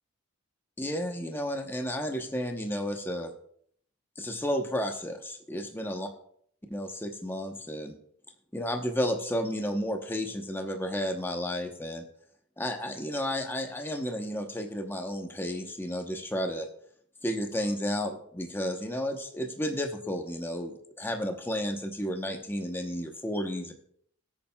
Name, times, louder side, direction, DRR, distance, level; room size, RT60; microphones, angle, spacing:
voice 1, 0.8-3.3 4.2-6.1 6.7-7.9 8.5-12.0 12.6-16.7 17.2-23.7, equal, 10° left, 4 dB, 0.9 m, -32 dB
19.0 x 8.8 x 2.3 m, 0.64 s
head